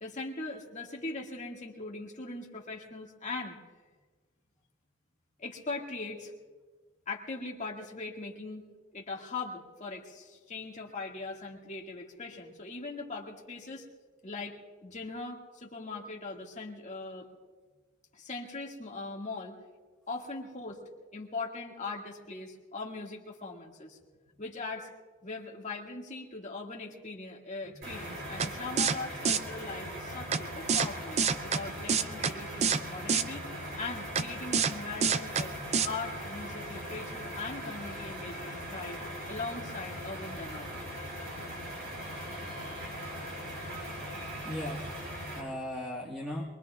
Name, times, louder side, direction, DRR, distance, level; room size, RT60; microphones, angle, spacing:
voice 1, 0.0-3.6 5.4-6.3 7.1-8.6 8.9-13.8 14.2-17.3 18.1-19.6 20.1-20.8 21.1-24.0 24.4-24.9 25.2-33.5 33.8-35.5 35.8-39.0 39.3-40.9, left 3 dB, 35° left, -1 dB, 2.0 m, -40 dB
sound 1, 27.8-45.4, equal, 55° right, 6.0 m, -40 dB
sound 2, 28.4-28.5 28.8-29.0 29.2-29.4 30.3-30.4 30.7-30.9 31.2-31.6 31.9-32.3 32.6-32.8 33.1-33.2 34.2-34.3 34.5-34.7 35.0-35.4 35.7-35.9, right 6 dB, 30° right, 0.5 m, -26 dB
voice 2, 44.4-46.4, left 1 dB, ahead, -2 dB, 1.5 m, -38 dB
23.5 x 23.0 x 2.4 m, 1.4 s
head